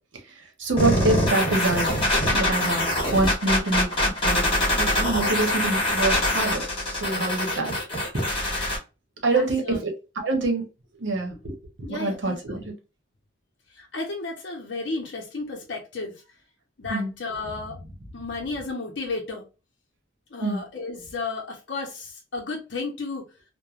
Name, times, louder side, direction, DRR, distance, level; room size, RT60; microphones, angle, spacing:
voice 1, 0.6-2.0 2.3-2.9 3.1-4.5 4.7-6.6 7.0-7.7 9.2-9.9 10.2-10.6 11.0-12.7 16.9-17.1 20.4-20.6, right 2 dB, 70° right, 3 dB, 0.9 m, -25 dB
sound 1, 0.8-8.8, left 1 dB, 25° left, 1.0 m, -24 dB
voice 2, 9.3-9.8 11.9-12.6 13.8-16.1 16.8-17.8 18.1-19.4 20.3-23.2, left 3 dB, 60° left, -1 dB, 0.6 m, -33 dB
3.0 x 2.1 x 2.4 m, 0.30 s
head